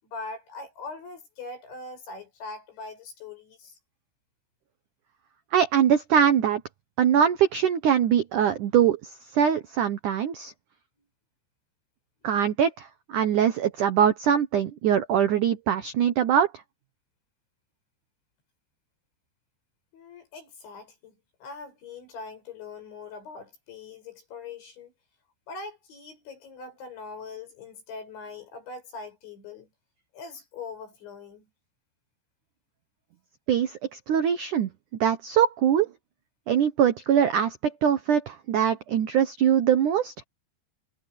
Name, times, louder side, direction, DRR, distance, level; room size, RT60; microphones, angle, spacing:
voice 1, 0.0-3.8 19.9-21.2 21.4-24.9 25.5-29.7 30.1-31.5, left 4 dB, 75° left, 10.0 m, -41 dB
voice 2, 5.5-6.6 7.0-9.0 9.3-10.5 12.2-16.5 33.5-34.7 35.0-35.9 36.5-40.1, right 9 dB, 80° right, 1.8 m, -22 dB
omnidirectional pair, 5.4 m